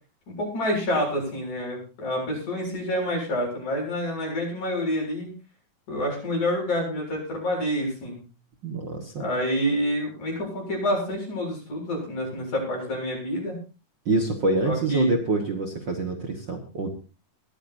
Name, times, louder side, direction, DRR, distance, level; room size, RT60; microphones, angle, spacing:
voice 1, 0.3-5.3 5.9-8.2 9.2-13.6 14.6-15.1, equal, 65° left, -1 dB, 8.8 m, -28 dB
voice 2, 8.6-9.2 14.1-16.9, right 3 dB, 45° right, 3 dB, 1.7 m, -26 dB
21.5 x 14.5 x 2.7 m, 0.34 s
omnidirectional pair, 3.7 m